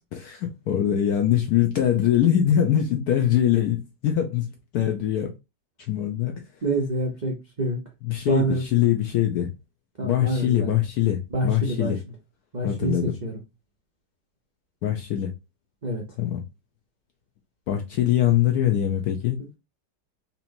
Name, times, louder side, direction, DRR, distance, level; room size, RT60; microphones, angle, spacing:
voice 1, 0.2-4.5 4.7-5.3 5.9-6.3 8.0-9.5 10.0-12.0 12.6-13.1 14.8-15.3 16.2-16.4 17.7-19.4, left 11 dB, 70° left, 0.9 m, -23 dB
voice 2, 6.6-7.8 8.3-8.6 10.0-10.8 11.3-11.9 12.5-13.4 15.8-16.0, right 2 dB, 60° right, 0.4 m, -26 dB
4.2 x 2.8 x 2.6 m
omnidirectional pair, 2.0 m